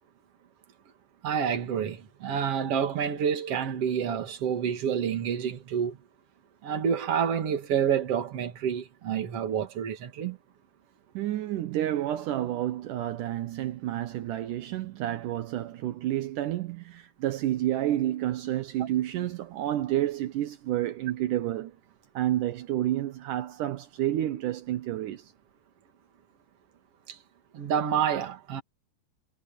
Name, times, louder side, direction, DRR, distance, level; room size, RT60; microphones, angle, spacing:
voice 1, 1.2-6.0 6.6-10.4 18.8-18.9 27.1-27.2 27.5-28.6, right 8 dB, 50° right, 2.7 m, -28 dB
voice 2, 11.1-21.7 22.1-25.3, right 13 dB, 75° right, 2.5 m, -30 dB
omnidirectional pair, 3.8 m